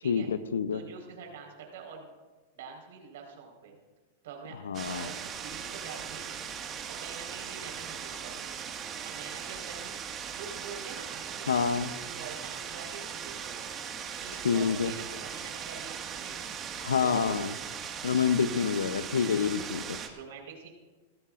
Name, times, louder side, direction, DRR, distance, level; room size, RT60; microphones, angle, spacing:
voice 1, 0.0-0.8 4.6-5.1 11.5-11.9 14.4-14.9 16.8-17.5 18.0-20.0, left 6 dB, 85° left, 14 dB, 0.7 m, -27 dB
voice 2, 0.7-2.1 2.5-3.8 4.2-4.6 4.8-6.3 6.9-8.6 9.0-10.0 10.3-13.7 14.2-16.4 17.0-17.7 20.1-20.7, right 6 dB, 70° right, 2 dB, 4.5 m, -45 dB
sound 1, 4.7-20.1, right 7 dB, 30° right, 1.8 m, -39 dB
24.0 x 14.5 x 2.6 m, 1.3 s
hypercardioid pair, 110°, 0 cm